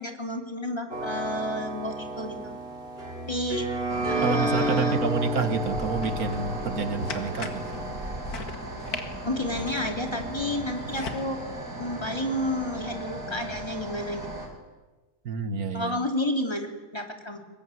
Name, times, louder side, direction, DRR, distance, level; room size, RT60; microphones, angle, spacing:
voice 1, 0.0-2.4 3.3-3.7 4.1-4.9 9.2-11.4 11.8-14.3 15.7-17.4, left 1 dB, 15° left, 4 dB, 2.9 m, -31 dB
sound 1, 0.9-8.2, right 1 dB, 40° right, 4.0 m, -31 dB
sound 2, 3.9-14.5, right 1 dB, 60° right, 5.7 m, -37 dB
voice 2, 4.2-7.7 15.2-16.1, right 5 dB, 80° right, 10 dB, 2.0 m, -28 dB
sound 3, 6.0-11.2, left 4 dB, 90° left, 2.5 m, -40 dB
22.5 x 20.0 x 9.8 m, 1.2 s
omnidirectional pair, 1.5 m